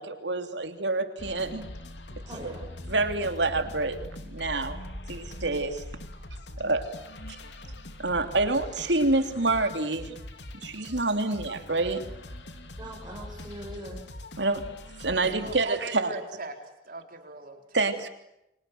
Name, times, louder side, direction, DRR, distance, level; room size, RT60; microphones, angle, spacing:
voice 1, 0.0-1.7 2.4-2.5 2.9-4.0 4.2-4.8 5.1-5.8 6.6-6.9 8.0-10.1 10.6-12.0 14.4-14.6 15.0-16.1 17.7-18.1, right 2 dB, 80° right, 7 dB, 3.1 m, -27 dB
sound 1, 1.2-15.6, left 1 dB, 75° left, 3.0 m, -42 dB
voice 2, 2.2-2.7 6.2-6.3 7.6-7.7 12.7-14.1, right 1 dB, 25° right, -3 dB, 7.1 m, -42 dB
voice 3, 15.4-16.5 16.9-17.8, right 3 dB, 55° right, 5 dB, 4.3 m, -40 dB
30.0 x 25.0 x 8.0 m, 0.84 s
head